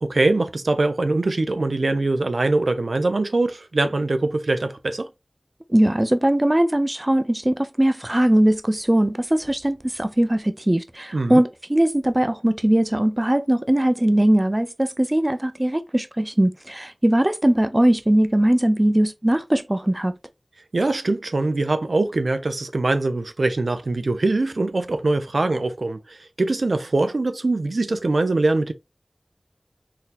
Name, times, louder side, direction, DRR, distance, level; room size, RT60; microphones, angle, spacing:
voice 1, 0.0-5.1 11.1-11.4 20.7-28.7, right 2 dB, 85° right, 0.4 m, -22 dB
voice 2, 5.7-20.1, right 1 dB, 25° right, 0.4 m, -20 dB
3.9 x 2.7 x 2.4 m
wide cardioid pair, 60°, 0 cm